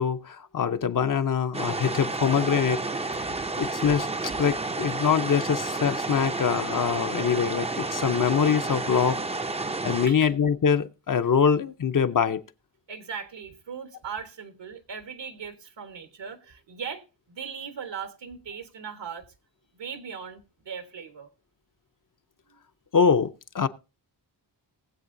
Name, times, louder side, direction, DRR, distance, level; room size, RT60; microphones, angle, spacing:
voice 1, 0.0-9.2 9.8-12.4 22.9-23.7, left 7 dB, 45° left, 0.7 m, -24 dB
sound 1, 1.5-10.1, right 3 dB, 15° right, 0.5 m, -31 dB
voice 2, 12.9-19.3 19.7-21.3 22.5-22.6, right 6 dB, 75° right, 1.4 m, -39 dB
19.5 x 7.8 x 2.6 m
wide cardioid pair, 95°, 43 cm